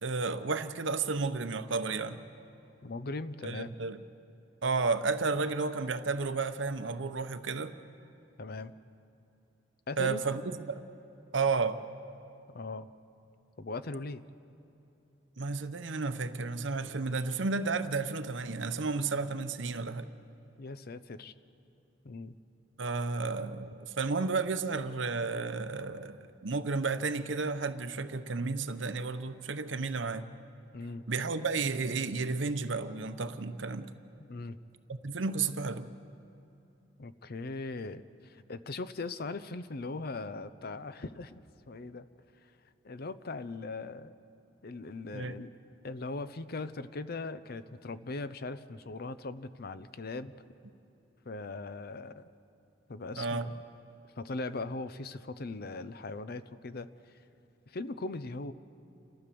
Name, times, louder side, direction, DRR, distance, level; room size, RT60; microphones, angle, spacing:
voice 1, 0.0-2.2 3.4-4.0 4.6-7.7 10.0-10.8 11.3-11.8 15.4-20.1 22.8-30.2 31.1-33.9 35.0-35.9 45.1-45.3 53.2-53.4, right 4 dB, 80° right, 10 dB, 0.8 m, -32 dB
voice 2, 2.8-3.7 8.4-8.7 9.9-10.2 12.5-12.9 13.6-14.2 20.6-21.3 22.0-22.4 30.7-31.0 34.3-34.6 37.0-42.1 42.4-42.6 42.8-44.1 44.6-45.5 45.8-50.3 51.3-52.3 52.9-53.6 54.2-57.2 57.7-58.5, left 3 dB, 55° left, 13 dB, 0.7 m, -39 dB
29.5 x 13.0 x 6.9 m, 2.8 s
head